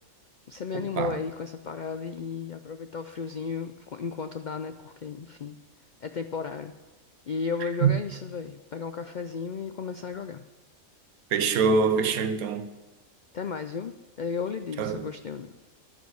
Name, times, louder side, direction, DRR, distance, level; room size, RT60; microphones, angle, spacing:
voice 1, 0.5-5.6 6.0-6.7 7.3-10.4 13.3-15.5, left 5 dB, 75° left, 0.4 m, -34 dB
voice 2, 11.3-12.7 14.8-15.1, right 5 dB, 90° right, 1.3 m, -24 dB
11.5 x 9.5 x 6.4 m
omnidirectional pair, 1.5 m